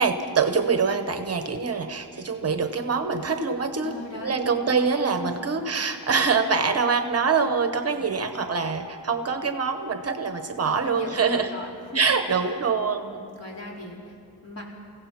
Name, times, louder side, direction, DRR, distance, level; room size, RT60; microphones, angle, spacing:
voice 1, 0.0-3.9 4.2-11.5 11.9-13.2, right 5 dB, 40° right, 8 dB, 1.0 m, -24 dB
voice 2, 3.8-4.9 5.2-5.5 7.9-8.3 10.6-12.6 13.0-14.6, left 1 dB, 40° left, -2 dB, 4.2 m, -40 dB
29.5 x 16.0 x 5.8 m, 2.5 s
wide cardioid pair, 165°, 38 cm